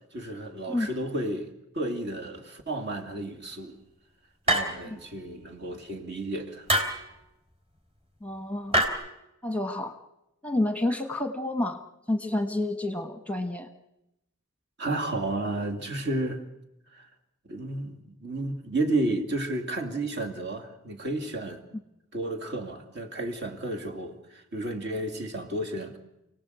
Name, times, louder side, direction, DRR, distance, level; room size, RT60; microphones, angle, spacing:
voice 1, 0.1-3.8 4.5-6.7 14.8-16.4 16.9-17.1 17.4-21.6 22.1-26.0, right 2 dB, 50° right, 2.6 m, -32 dB
sound 1, 4.5-5.0 6.7-7.0 8.7-8.9, equal, 25° right, 3.5 m, -24 dB
voice 2, 8.2-8.8 9.4-10.0 10.4-11.8 12.1-13.7, left 1 dB, 5° left, 1.2 m, -29 dB
29.5 x 18.0 x 8.1 m
head